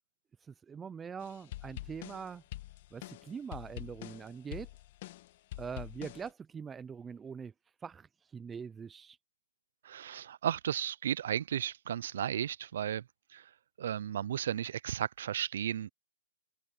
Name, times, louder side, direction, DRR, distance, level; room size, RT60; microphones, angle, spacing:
voice 1, 0.5-2.4 2.9-4.7 5.6-7.5 7.8-8.1 8.3-9.2, right 6 dB, 10° right, 0.6 m, -43 dB
sound 1, 1.2-6.3, left 15 dB, 45° left, 1.3 m, -46 dB
voice 2, 9.8-13.5 13.8-15.9, right 10 dB, 60° right, 0.5 m, -34 dB
open air
hypercardioid pair, 150°, 0 cm